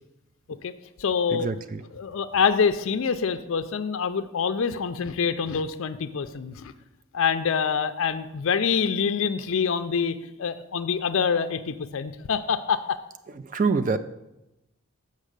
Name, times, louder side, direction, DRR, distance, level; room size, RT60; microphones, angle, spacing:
voice 1, 1.0-1.5 1.9-6.7 7.1-13.0, left 6 dB, 65° left, 9 dB, 0.4 m, -26 dB
voice 2, 13.5-14.0, right 4 dB, 35° right, 11 dB, 0.3 m, -23 dB
7.4 x 5.4 x 6.6 m, 0.92 s
head